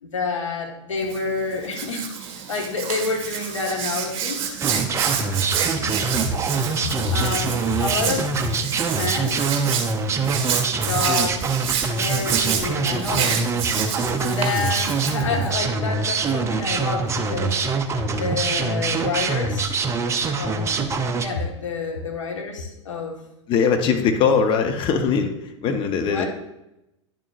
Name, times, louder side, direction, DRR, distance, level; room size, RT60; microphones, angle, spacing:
voice 1, 0.0-4.4 7.1-8.4 8.8-9.5 10.7-11.5 11.8-13.4 14.2-17.6 18.1-19.7 20.4-20.9 21.2-23.1 25.6-25.8 26.1-26.3, left 4 dB, 80° left, 1 dB, 1.5 m, -28 dB
Hands, 1.0-15.6, right 8 dB, 40° right, 1.5 m, -28 dB
sound 1, 4.6-21.3, right 4 dB, 20° right, 0.6 m, -24 dB
voice 2, 23.5-25.3 25.6-26.3, left 6 dB, 35° left, 6 dB, 0.9 m, -20 dB
9.9 x 7.4 x 2.5 m, 0.89 s
figure-of-eight pair, 100°, 16 cm